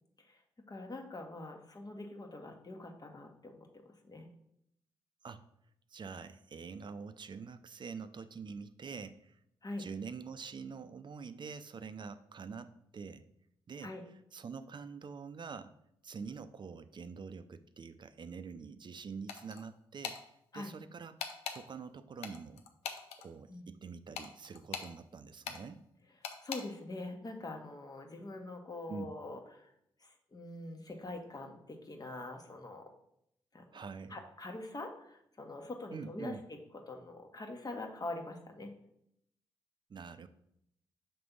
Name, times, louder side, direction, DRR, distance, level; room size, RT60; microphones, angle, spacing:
voice 1, 0.7-4.3 9.6-9.8 13.8-14.0 20.5-20.7 23.5-23.7 26.4-29.7 30.0-32.9 33.5-33.6 34.1-36.6 36.9-38.7, left 2 dB, 35° left, 3 dB, 1.3 m, -44 dB
voice 2, 5.9-9.4 9.8-13.3 13.7-13.9 14.3-15.8 16.0-20.2 20.5-22.6 23.2-25.8 28.9-29.1 33.7-34.2 35.9-36.4 39.9-40.3, right 5 dB, 45° right, 11 dB, 0.5 m, -45 dB
sound 1, 19.3-19.6 20.0-20.2 21.2-21.6 22.2-23.2 24.1-24.9 25.4-25.6 26.2-26.6, left 7 dB, 85° left, 0.6 m, -40 dB
5.9 x 3.3 x 5.3 m, 0.76 s
hypercardioid pair, 40°, 11 cm